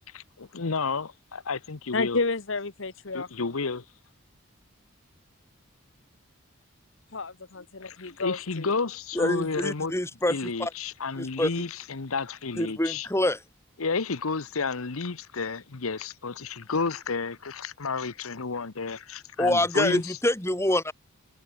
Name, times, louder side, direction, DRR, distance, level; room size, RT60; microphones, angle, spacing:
voice 1, 0.1-2.2 3.1-3.8 7.8-9.9 10.3-13.1 13.8-20.2, left 4 dB, 80° left, 1.0 m, -31 dB
voice 2, 1.9-3.5 7.1-8.7, left 3 dB, 65° left, 1.3 m, -31 dB
voice 3, 9.2-10.7 11.2-11.5 12.6-13.4 19.4-20.9, left 1 dB, 10° left, 2.0 m, -26 dB
head